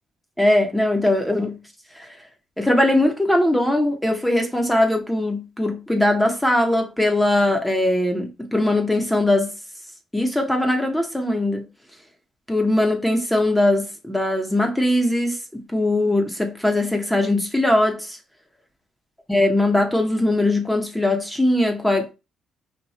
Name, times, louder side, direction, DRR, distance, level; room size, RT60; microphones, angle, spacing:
voice 1, 0.4-1.6 2.0-2.1 2.6-9.5 10.1-11.6 12.5-18.2 19.3-22.1, left 1 dB, 5° left, 1.1 m, -20 dB
4.9 x 2.6 x 4.1 m
cardioid pair, 90°, 0 cm